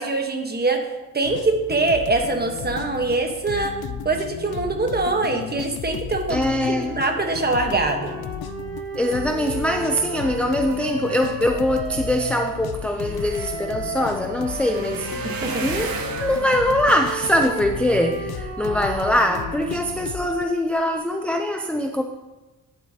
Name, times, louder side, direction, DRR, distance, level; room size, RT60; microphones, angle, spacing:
voice 1, 0.0-3.7 4.0-8.2 15.2-15.7, right 3 dB, 25° right, 3 dB, 1.2 m, -23 dB
sound 1, 1.2-20.4, left 9 dB, 80° left, 0.5 m, -34 dB
voice 2, 6.3-6.9 9.0-15.3 15.6-15.9 16.2-22.0, left 1 dB, 5° left, 4 dB, 0.4 m, -22 dB
sound 2, 6.5-12.6 13.2-19.8, right 4 dB, 50° right, 3.3 m, -34 dB
sound 3, 12.6-18.8 19.3-19.8 20.2-20.4 20.7-20.8, right 4 dB, 70° right, 1.1 m, -36 dB
11.0 x 8.0 x 2.8 m, 1.1 s
wide cardioid pair, 120°, 37 cm